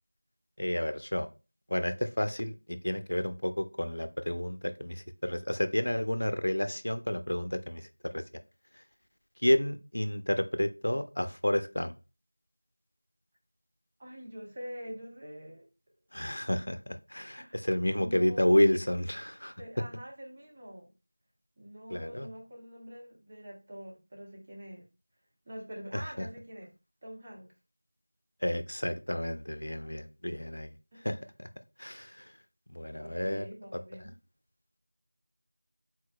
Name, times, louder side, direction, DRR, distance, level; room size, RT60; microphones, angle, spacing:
voice 1, 0.6-1.3 1.7-8.2 9.4-11.9 16.1-19.5 21.9-22.3 25.9-26.3 28.4-30.7 31.0-31.5 31.8-32.3 32.7-33.5 33.7-33.8, left 1 dB, 70° left, 9 dB, 0.5 m, -30 dB
voice 2, 14.0-15.7 17.4-17.7 18.0-18.7 19.6-20.9 21.6-24.8 25.4-26.7 27.0-27.5 29.8-29.9 30.9-31.1 33.0-34.1, equal, 20° right, -3 dB, 0.8 m, -45 dB
4.6 x 3.8 x 2.3 m, 0.31 s
figure-of-eight pair, 175°, 0 cm